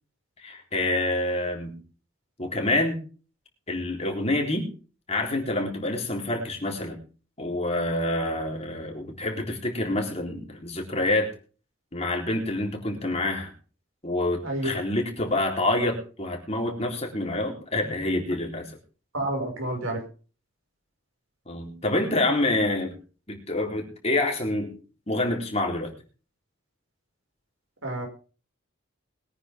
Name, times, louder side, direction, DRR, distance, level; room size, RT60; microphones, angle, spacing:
voice 1, 0.4-1.8 2.4-3.0 3.7-4.7 5.1-7.0 7.4-11.3 11.9-13.5 14.0-18.6 21.5-22.9 23.3-24.7 25.1-25.9, left 2 dB, 30° left, 1 dB, 3.9 m, -27 dB
voice 2, 19.1-20.0 27.8-28.1, right 1 dB, 80° right, 2 dB, 5.9 m, -29 dB
22.0 x 9.8 x 3.7 m, 0.38 s
head